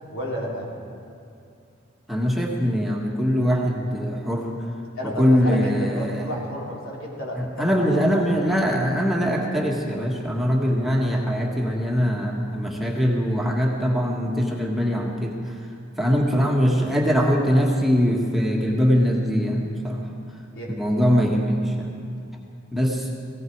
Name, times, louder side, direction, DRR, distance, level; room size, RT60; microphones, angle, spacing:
voice 1, 0.1-0.7 5.0-8.4 20.5-20.7, equal, 75° left, -4 dB, 4.0 m, -32 dB
voice 2, 2.1-4.5 5.0-6.3 7.4-15.3 16.0-20.1 20.7-21.9 22.7-23.1, equal, ahead, -2 dB, 1.5 m, -22 dB
17.5 x 17.5 x 4.7 m, 2.5 s
head